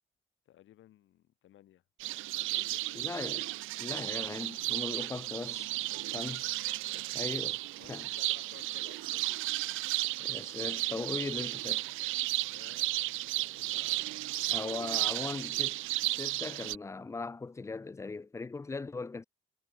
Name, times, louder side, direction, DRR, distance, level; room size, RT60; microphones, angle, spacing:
voice 1, 0.5-1.8 2.5-3.0 4.6-4.9 5.9-6.2 6.8-7.5 7.8-9.3 12.5-15.2, left 13 dB, 80° left, 3.8 m, -58 dB
sound 1, 2.0-16.8, right 18 dB, 85° right, 0.5 m, -34 dB
voice 2, 2.9-3.5 3.8-5.7 6.1-6.5 7.2-7.6 7.9-8.1 10.2-11.9 14.5-15.8 16.0-19.2, left 3 dB, 15° left, 0.4 m, -39 dB
cardioid pair, 90°, 20 cm